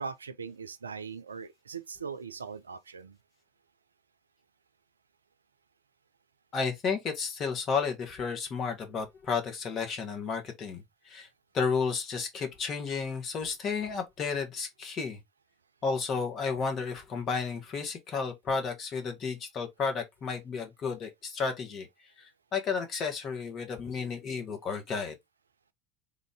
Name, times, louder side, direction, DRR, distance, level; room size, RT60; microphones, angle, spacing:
voice 1, 0.0-3.2, right 5 dB, 85° right, 0.3 m, -40 dB
voice 2, 6.5-11.3 11.5-15.2 15.8-21.9 22.5-25.1, left 5 dB, 40° left, 1.3 m, -32 dB
3.7 x 2.6 x 3.5 m
figure-of-eight pair, 75°, 0 cm